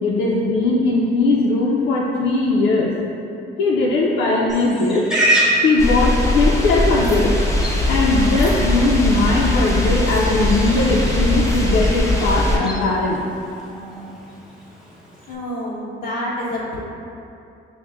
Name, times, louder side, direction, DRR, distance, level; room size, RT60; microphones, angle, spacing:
voice 1, 0.0-3.0 3.6-5.1 5.6-7.4 7.9-13.2, left 2 dB, 85° left, -4 dB, 0.5 m, -19 dB
Livestock farm animals working animals, 4.5-15.4, right 1 dB, 5° right, 0.9 m, -28 dB
sound 1, 5.8-12.6, left 1 dB, 15° left, 0.6 m, -20 dB
voice 2, 15.3-16.8, left 1 dB, 50° left, -9 dB, 0.9 m, -27 dB
6.1 x 2.1 x 3.4 m, 2.7 s
cardioid pair, 90°, 20 cm